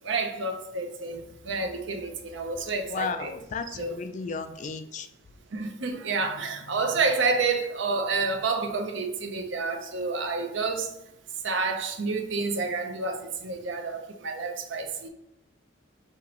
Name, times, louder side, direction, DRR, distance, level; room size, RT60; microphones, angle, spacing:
voice 1, 0.0-3.3 3.7-4.0 5.5-10.9 11.4-15.1, right 4 dB, 70° right, 0.7 m, -29 dB
voice 2, 2.9-5.1, left 5 dB, 40° left, 0.3 m, -34 dB
5.8 x 2.9 x 3.0 m
head